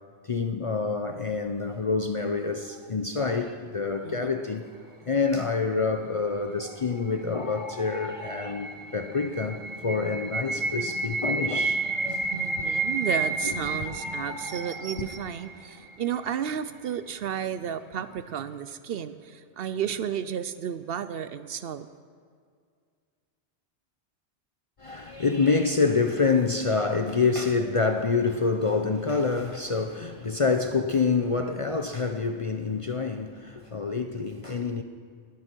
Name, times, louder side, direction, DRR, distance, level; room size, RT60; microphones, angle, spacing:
voice 1, 0.2-4.7 5.0-12.9 13.4-13.5 15.0-15.1 24.8-34.8, left 4 dB, 40° left, 0.5 m, -27 dB
voice 2, 4.0-4.4 12.3-21.9, right 8 dB, 65° right, 0.7 m, -32 dB
sound 1, 4.1-15.9, left 2 dB, 90° left, 3.7 m, -48 dB
sound 2, 7.2-16.2, right 3 dB, 30° right, 0.9 m, -31 dB
19.0 x 11.0 x 4.5 m
omnidirectional pair, 1.1 m